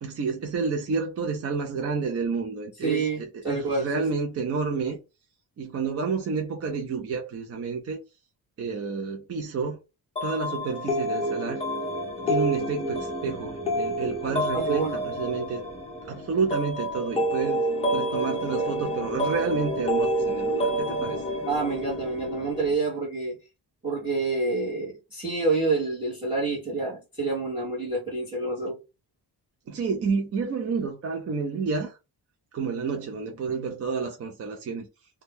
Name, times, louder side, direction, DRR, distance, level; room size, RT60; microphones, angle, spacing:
voice 1, 0.0-5.0 5.6-8.0 8.6-9.8 10.2-11.6 12.3-15.6 16.1-17.6 17.9-21.2 29.7-32.0 32.5-34.9, right 4 dB, 35° right, 0.4 m, -30 dB
voice 2, 2.8-4.0 14.5-14.9 21.5-23.4 23.8-28.8, right 3 dB, 10° right, 1.2 m, -28 dB
sound 1, 10.2-22.7, equal, 15° left, 0.5 m, -28 dB
2.7 x 2.3 x 3.4 m
wide cardioid pair, 175°, 41 cm